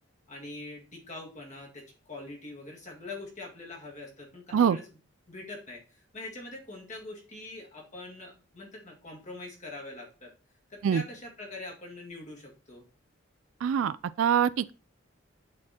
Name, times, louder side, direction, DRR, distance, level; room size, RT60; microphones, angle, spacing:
voice 1, 0.3-5.0 5.3-10.3 10.7-12.9, left 2 dB, 35° left, 2.1 m, -43 dB
voice 2, 13.6-14.7, right 8 dB, 80° right, 0.3 m, -24 dB
8.4 x 4.5 x 4.3 m
head